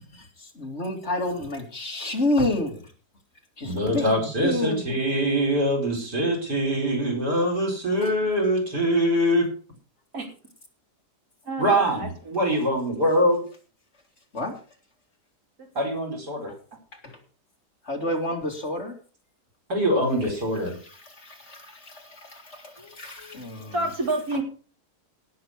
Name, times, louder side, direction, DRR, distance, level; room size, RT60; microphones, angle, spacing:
voice 1, 0.1-2.8 3.6-4.8 8.0-8.1 14.3-14.5 16.5-16.6 17.0-17.2 17.9-18.9 21.0-23.7, left 1 dB, 45° left, 2 dB, 2.8 m, -29 dB
voice 2, 3.6-9.5 11.6-13.4 15.8-16.5 19.7-20.8, equal, 85° right, 3 dB, 5.6 m, -23 dB
voice 3, 11.5-12.6 22.8-23.4 23.7-24.4, right 2 dB, 65° right, 1 dB, 4.0 m, -30 dB
17.5 x 6.7 x 6.1 m, 0.39 s
omnidirectional pair, 1.7 m